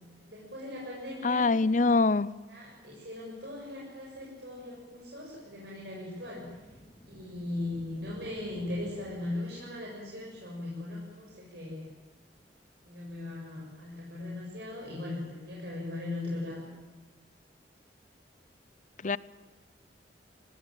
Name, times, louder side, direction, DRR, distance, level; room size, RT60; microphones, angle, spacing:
voice 1, 0.2-1.5 2.5-6.5 7.1-11.9 12.8-16.7, left 2 dB, 65° right, 7.2 m, -39 dB
voice 2, 1.2-2.3 19.0-19.2, left 3 dB, 45° left, 0.7 m, -24 dB
sound 1, 6.0-9.8, equal, 20° left, 2.8 m, -54 dB
24.5 x 19.5 x 9.1 m
head